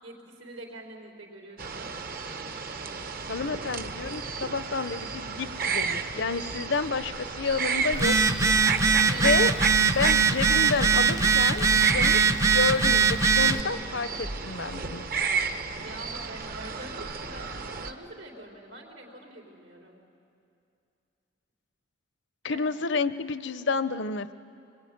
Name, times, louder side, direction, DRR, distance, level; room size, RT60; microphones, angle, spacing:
voice 1, 0.0-1.9 9.0-9.5 15.7-20.0 22.4-22.7, right 2 dB, 80° right, -3 dB, 4.1 m, -44 dB
sound 1, 1.6-17.9, right 5 dB, 45° right, 1.1 m, -33 dB
voice 2, 3.3-8.6 9.2-9.5 9.9-15.0 22.4-24.3, left 4 dB, 60° left, 13 dB, 0.7 m, -30 dB
Telephone, 7.9-13.6, right 5 dB, 15° right, 0.6 m, -21 dB
25.5 x 22.0 x 9.5 m, 2.6 s
head